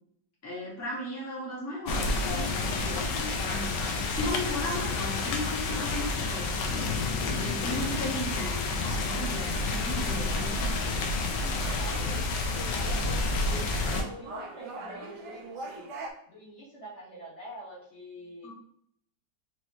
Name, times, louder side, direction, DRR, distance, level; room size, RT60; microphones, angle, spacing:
voice 1, 0.4-3.7 4.1-6.9 7.3-11.1 18.4-18.5, left 1 dB, 10° left, -5 dB, 0.9 m, -36 dB
sound 1, 1.9-14.0, left 3 dB, 80° left, 1.3 m, -29 dB
sound 2, 9.8-16.1, right 2 dB, 70° right, 1.3 m, -43 dB
voice 2, 11.7-12.2 12.7-15.9 16.3-18.5, equal, 45° left, -6 dB, 1.3 m, -46 dB
4.5 x 2.9 x 2.9 m, 0.68 s
omnidirectional pair, 2.0 m